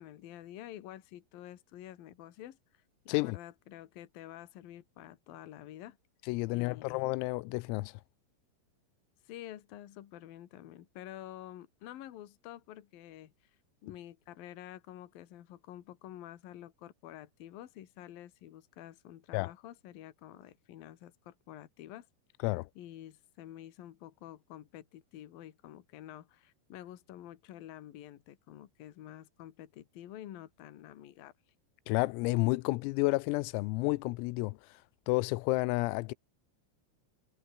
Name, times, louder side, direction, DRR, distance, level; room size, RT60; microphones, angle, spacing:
voice 1, 0.0-2.6 3.0-6.0 6.5-7.0 9.2-13.3 13.8-22.1 22.8-31.3, left 12 dB, 55° left, 2.9 m, -49 dB
voice 2, 6.3-7.9 19.3-19.5 22.4-22.7 31.9-34.6 35.1-36.1, left 23 dB, 90° left, 3.4 m, -30 dB
omnidirectional pair, 6.0 m